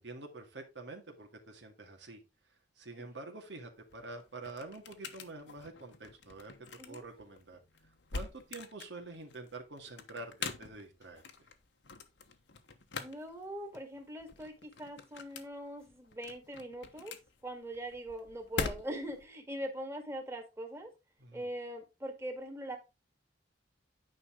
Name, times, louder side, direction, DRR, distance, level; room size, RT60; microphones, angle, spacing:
voice 1, 0.0-2.2 2.8-7.6 8.1-11.2 21.2-21.5, right 2 dB, 85° right, 3 dB, 2.0 m, -47 dB
sound 1, 3.7-19.2, left 4 dB, 85° left, 1.2 m, -45 dB
voice 2, 13.0-17.1 17.4-20.9 21.3-22.8, right 1 dB, 15° right, 3 dB, 1.9 m, -42 dB
9.8 x 5.4 x 3.8 m, 0.25 s
head